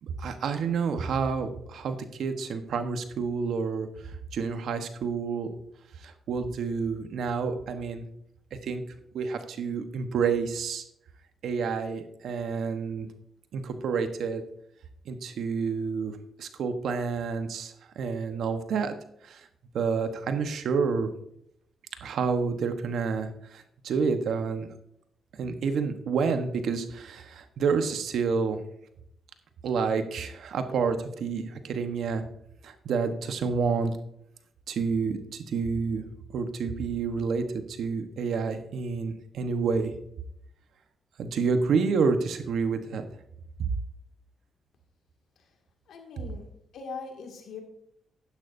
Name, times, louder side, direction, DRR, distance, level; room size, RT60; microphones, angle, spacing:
voice 1, 0.0-3.9 4.3-5.5 6.0-8.0 8.6-8.8 9.1-10.8 11.4-13.1 13.5-14.4 15.1-18.9 19.2-19.5 19.7-21.1 22.0-24.7 25.4-28.6 29.6-32.2 32.6-33.9 34.7-36.0 36.3-39.9 41.2-43.0, right 5 dB, 75° right, 8 dB, 1.1 m, -29 dB
voice 2, 45.9-47.6, left 4 dB, 75° left, 3 dB, 2.1 m, -41 dB
11.0 x 10.5 x 2.7 m, 0.74 s
cardioid pair, 70°, 0 cm